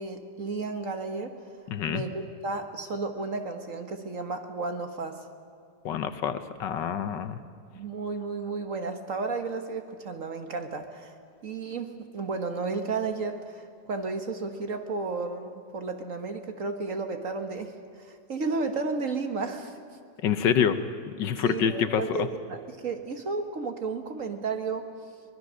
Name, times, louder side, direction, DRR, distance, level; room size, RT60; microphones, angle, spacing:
voice 1, 0.0-1.4 1.9-5.3 7.7-11.1 11.4-19.7 21.4-24.9, right 4 dB, 45° right, 6 dB, 1.6 m, -33 dB
voice 2, 1.7-2.0 5.8-7.4 20.2-20.8 21.1-22.3, left 8 dB, 75° left, 10 dB, 1.6 m, -27 dB
24.0 x 20.0 x 6.4 m, 2.4 s
omnidirectional pair, 2.0 m